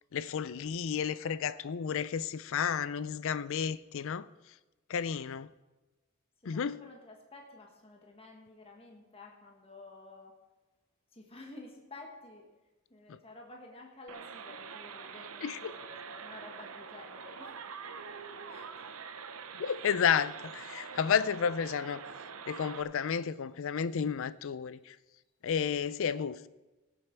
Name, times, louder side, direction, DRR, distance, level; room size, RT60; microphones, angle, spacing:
voice 1, 0.1-4.2 4.9-5.5 6.4-6.8 13.1-13.2 15.4-15.6 19.5-22.0 22.5-25.0 25.4-26.5, left 7 dB, 65° left, 0.4 m, -32 dB
voice 2, 6.4-10.3 11.1-12.5 12.9-17.6 17.9-18.0 18.4-18.7, left 2 dB, 25° left, 1.5 m, -51 dB
sound 1, 14.1-22.8, right 6 dB, 70° right, 0.8 m, -45 dB
18.0 x 7.7 x 4.6 m
head